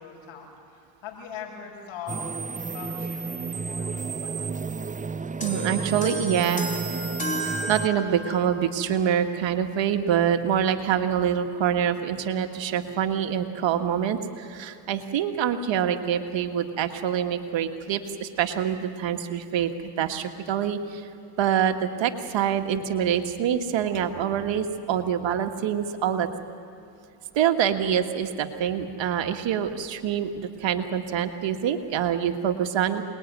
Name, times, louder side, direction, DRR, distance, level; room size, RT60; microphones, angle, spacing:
voice 1, 0.0-2.3 2.6-4.5, left 6 dB, 75° left, -1 dB, 6.2 m, -41 dB
sound 1, 2.1-7.9, right 4 dB, 15° right, 0.7 m, -32 dB
sound 2, 5.4-8.6, equal, 15° left, 3.6 m, -34 dB
voice 2, 5.4-6.8 7.4-19.7 20.0-21.1 21.4-26.3 27.3-33.0, right 9 dB, 70° right, 6 dB, 1.7 m, -25 dB
27.5 x 20.5 x 9.5 m, 2.6 s
supercardioid pair, 75°, 47 cm